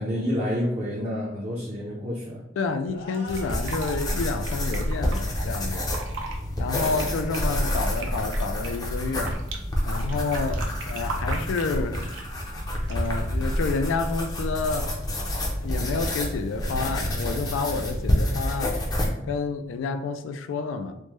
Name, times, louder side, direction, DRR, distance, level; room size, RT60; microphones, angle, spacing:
voice 1, 0.0-2.4 6.8-7.0, equal, 35° right, 0.5 m, -29 dB
voice 2, 2.6-5.9 6.6-9.4 9.9-12.1 12.9-14.9 15.6-18.8 19.3-20.9, left 4 dB, 90° left, 0.3 m, -29 dB
sound 1, 2.8-4.4, left 1 dB, 60° left, 0.7 m, -43 dB
Fill (with liquid), 3.1-5.2 5.8-6.4 6.7-9.6 9.9-12.3 12.8-13.2, right 4 dB, 85° right, 0.5 m, -38 dB
sound 2, 3.3-19.1, left 1 dB, 20° left, 0.4 m, -28 dB
3.2 x 2.0 x 3.1 m
head